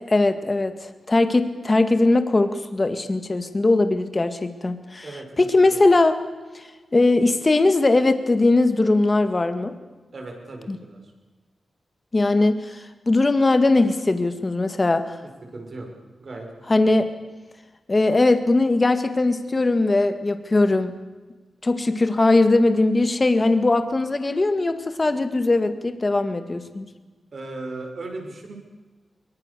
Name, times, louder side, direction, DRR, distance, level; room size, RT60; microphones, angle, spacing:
voice 1, 0.1-6.2 6.5-6.6 6.9-9.7 10.7-10.8 12.1-15.1 16.7-17.1 17.9-20.9 21.6-26.9, left 2 dB, 25° left, 9 dB, 2.0 m, -20 dB
voice 2, 10.1-11.0 15.5-15.9 16.2-16.5 27.3-28.6, right 2 dB, 45° right, 2 dB, 5.9 m, -36 dB
24.0 x 23.5 x 6.9 m, 1.3 s
wide cardioid pair, 145°, 0 cm